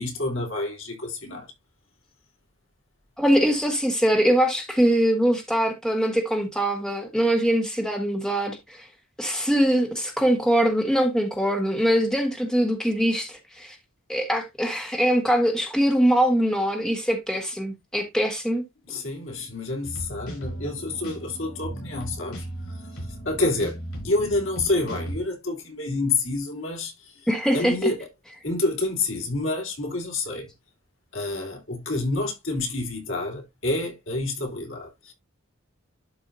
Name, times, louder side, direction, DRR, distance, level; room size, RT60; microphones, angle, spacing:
voice 1, 0.0-1.5 18.9-22.5 23.2-23.8 24.0-26.9 27.5-28.1 28.4-30.5 31.1-35.1, left 2 dB, 65° left, 3.3 m, -28 dB
voice 2, 3.2-8.9 9.2-13.8 14.1-18.6 27.3-27.9, equal, 5° left, 1.4 m, -22 dB
sound 1, 19.8-25.2, right 1 dB, 85° left, 5.5 m, -36 dB
11.5 x 4.8 x 2.7 m
head